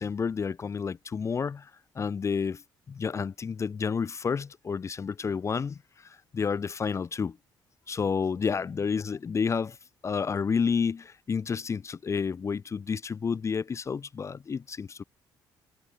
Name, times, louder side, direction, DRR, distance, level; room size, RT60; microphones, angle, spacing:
voice 1, 0.0-2.6 2.9-7.4 7.9-9.8 10.0-15.0, left 6 dB, 35° left, 0.8 m, -30 dB
cardioid pair, 105°, 9 cm